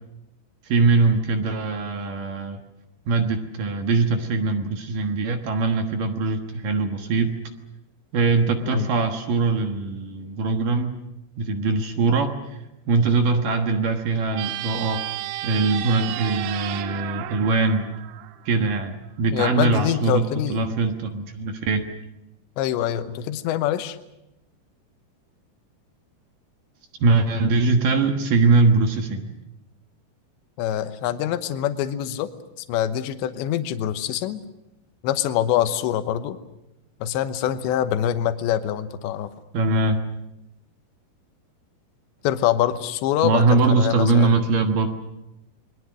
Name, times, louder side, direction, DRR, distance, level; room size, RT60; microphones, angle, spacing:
voice 1, 0.7-2.6 3.1-7.4 8.1-11.0 11.4-12.6 12.9-15.1 15.4-17.9 18.5-21.8 27.0-29.4 39.5-40.0 43.2-44.9, right 3 dB, 60° right, 5 dB, 2.5 m, -22 dB
sound 1, 14.3-18.8, right 14 dB, 80° right, 3.1 m, -32 dB
voice 2, 19.3-20.8 22.6-24.0 30.6-32.3 32.7-34.4 35.0-36.4 37.0-39.3 42.2-44.4, left 11 dB, 80° left, 10 dB, 3.2 m, -24 dB
28.5 x 22.0 x 6.4 m, 0.90 s
omnidirectional pair, 5.3 m